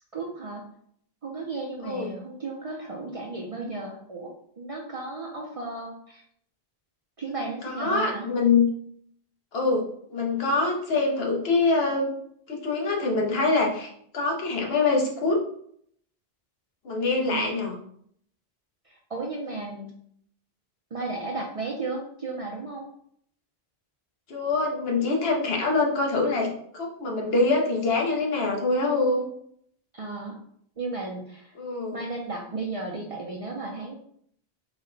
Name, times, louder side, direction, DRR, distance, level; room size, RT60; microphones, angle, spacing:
voice 1, 0.1-0.6 1.2-4.3 4.6-6.2 7.2-8.3 17.0-17.5 18.9-19.9 20.9-22.9 29.9-30.4 30.8-31.5 31.9-34.0, right 3 dB, 45° right, -1 dB, 0.5 m, -34 dB
voice 2, 7.6-8.7 9.5-9.8 10.1-12.1 12.5-15.4 16.8-17.7 24.3-29.3 31.6-32.0, left 3 dB, 75° left, 0 dB, 1.0 m, -24 dB
4.0 x 2.1 x 3.8 m, 0.66 s
omnidirectional pair, 1.0 m